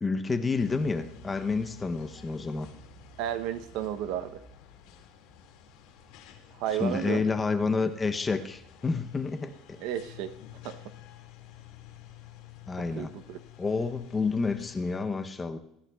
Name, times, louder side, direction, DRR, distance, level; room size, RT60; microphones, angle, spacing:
voice 1, 0.0-2.7 6.8-9.8 12.7-13.1 13.6-15.6, left 4 dB, 15° left, 7 dB, 0.6 m, -29 dB
sound 1, 0.6-15.0, left 6 dB, 65° left, 2.0 m, -51 dB
voice 2, 3.2-4.4 6.6-7.2 9.8-10.3 10.6-10.8 13.0-13.4, right 10 dB, 55° right, 11 dB, 0.7 m, -32 dB
22.5 x 13.5 x 2.3 m, 0.80 s
cardioid pair, 165°, 0 cm